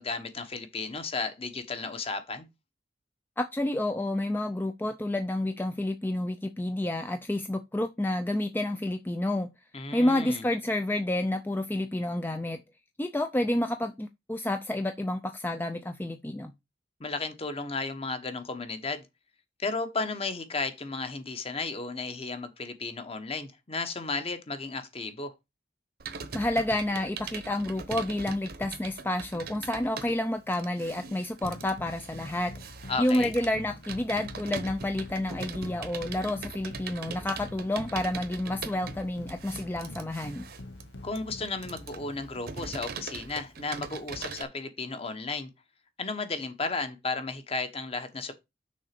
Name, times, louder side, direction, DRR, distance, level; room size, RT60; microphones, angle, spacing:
voice 1, 0.0-2.4 9.7-10.4 17.0-19.1 19.6-25.3 32.9-33.3 41.0-45.5 46.0-48.3, left 3 dB, 35° left, 1.1 m, -34 dB
voice 2, 3.4-9.5 9.9-12.6 13.0-16.5 26.3-32.5 33.0-40.4, left 1 dB, 10° left, 0.5 m, -29 dB
Computer keyboard, 26.0-44.4, right 5 dB, 55° right, 1.0 m, -41 dB
sound 1, 31.4-42.9, left 2 dB, 90° left, 1.0 m, -45 dB
6.4 x 4.0 x 5.9 m
head